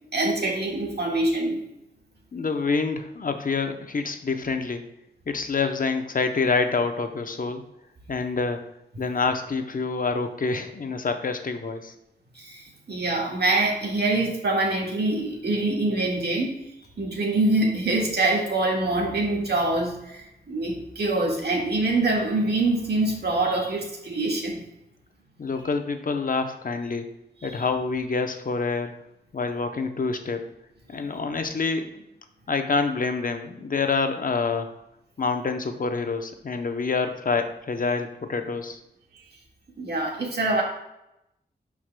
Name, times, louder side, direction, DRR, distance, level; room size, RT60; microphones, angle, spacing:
voice 1, 0.1-1.6 12.3-16.6 17.0-24.6 27.4-27.7 39.1-39.2 39.8-40.6, right 2 dB, 75° right, -1 dB, 1.7 m, -25 dB
voice 2, 2.3-4.9 5.3-7.6 8.1-8.7 9.0-11.9 25.4-27.1 27.4-28.9 29.3-30.4 30.9-32.0 32.5-34.7 35.2-38.8, left 4 dB, 55° left, 7 dB, 0.7 m, -27 dB
12.0 x 4.8 x 2.2 m, 0.85 s
wide cardioid pair, 110°, 17 cm